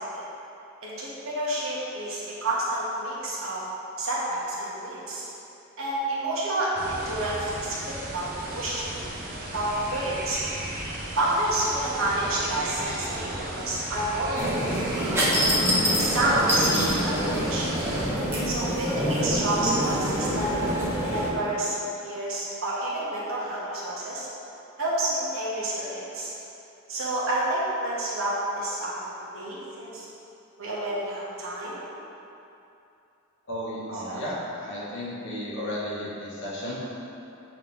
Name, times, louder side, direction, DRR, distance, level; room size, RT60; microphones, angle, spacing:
voice 1, 0.8-3.6 4.0-5.3 5.8-7.7 8.1-8.3 8.5-9.0 9.5-10.4 11.2-13.3 13.5-15.2 15.8-17.7 18.4-20.6 21.1-21.7 22.0-24.3 24.8-26.3 26.9-28.9 29.3-30.1 30.6-31.8 33.9-34.2, right 1 dB, 70° right, -7 dB, 1.4 m, -29 dB
sound 1, 6.8-18.1, right 1 dB, 45° right, 0.9 m, -36 dB
sound 2, 14.4-21.3, equal, 10° right, 1.1 m, -26 dB
voice 2, 33.5-36.8, equal, 60° left, -7 dB, 1.5 m, -33 dB
8.2 x 3.3 x 3.6 m, 2.8 s
head